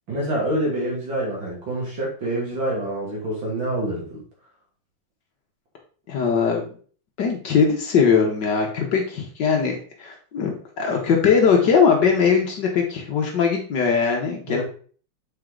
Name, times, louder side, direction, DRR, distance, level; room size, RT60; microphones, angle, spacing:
voice 1, 0.1-4.2 14.5-14.6, right 1 dB, 80° right, -3 dB, 3.4 m, -26 dB
voice 2, 6.1-6.6 7.2-14.6, left 6 dB, 65° left, 1 dB, 1.7 m, -20 dB
7.5 x 4.6 x 3.8 m, 0.43 s
omnidirectional pair, 2.1 m